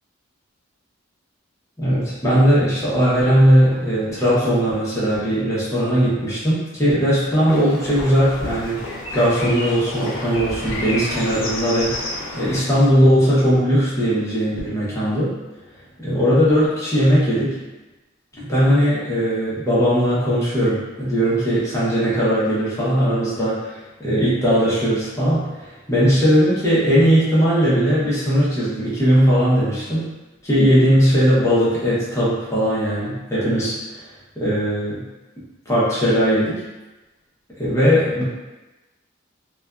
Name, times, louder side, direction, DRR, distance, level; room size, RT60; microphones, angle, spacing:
voice 1, 1.8-11.9 12.3-15.3 16.0-17.6 18.4-30.1 30.4-34.0 34.4-35.0 35.7-36.6 37.6-38.2, equal, 15° left, -9 dB, 0.7 m, -18 dB
sound 1, 7.5-12.6, left 1 dB, 60° left, 0.6 m, -30 dB
2.5 x 2.2 x 2.2 m, 1.1 s
head